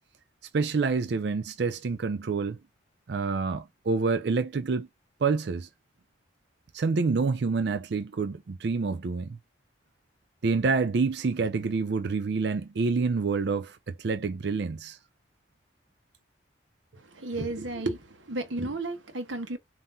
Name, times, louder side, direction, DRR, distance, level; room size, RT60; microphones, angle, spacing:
voice 1, 0.5-2.6 3.1-4.9 5.2-5.7 6.7-9.4 10.4-15.0, right 4 dB, 60° right, 0.4 m, -27 dB
voice 2, 16.9-19.6, right 2 dB, 80° right, 1.1 m, -33 dB
5.4 x 2.9 x 2.6 m
head